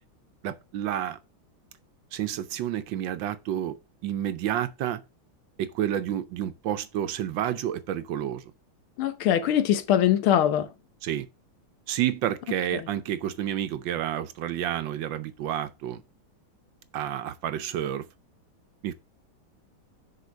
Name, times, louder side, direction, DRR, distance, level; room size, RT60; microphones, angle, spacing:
voice 1, 0.4-1.2 2.1-3.8 4.0-5.0 5.6-8.4 11.0-11.3 11.9-16.0 16.9-18.1 18.8-18.9, right 11 dB, 70° right, 1.3 m, -30 dB
voice 2, 9.0-10.7 12.7-12.8, left 10 dB, 80° left, 1.7 m, -22 dB
6.8 x 4.4 x 6.3 m
omnidirectional pair, 2.3 m